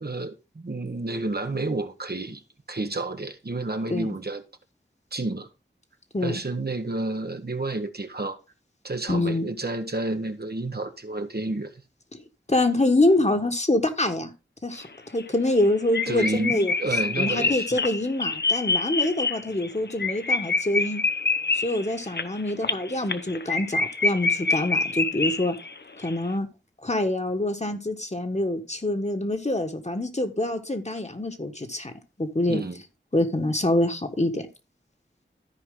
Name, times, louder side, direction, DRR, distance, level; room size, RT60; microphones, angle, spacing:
voice 1, 0.0-2.4 2.7-4.4 5.1-5.5 6.2-8.4 8.8-11.7 16.1-17.8 32.5-32.8, right 2 dB, 55° right, 1.1 m, -30 dB
voice 2, 9.1-9.5 12.1-12.2 12.5-14.3 14.6-16.7 17.2-21.0 21.5-25.5 26.0-26.5 26.8-31.9 32.2-32.6 33.1-34.4, left 1 dB, 35° left, 1.5 m, -25 dB
sound 1, 14.8-14.9 15.2-15.3 15.6-15.7 15.9-25.8 26.0-26.1, left 3 dB, 60° left, 0.8 m, -26 dB
14.0 x 4.8 x 3.7 m
wide cardioid pair, 50°, 20 cm